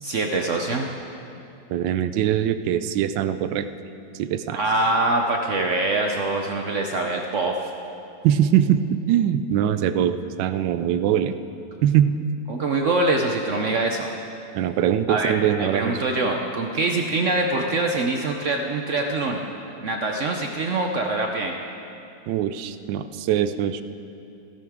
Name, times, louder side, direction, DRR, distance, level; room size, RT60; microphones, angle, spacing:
voice 1, 0.0-0.9 4.5-7.6 12.5-14.1 15.1-19.5 19.8-21.6, right 2 dB, 65° right, 2 dB, 0.7 m, -24 dB
voice 2, 1.7-3.7 4.2-4.6 8.2-11.3 11.8-12.1 14.5-16.0 22.3-23.8, right 10 dB, 80° right, 11 dB, 1.3 m, -22 dB
16.0 x 12.5 x 3.6 m, 2.7 s
omnidirectional pair, 2.1 m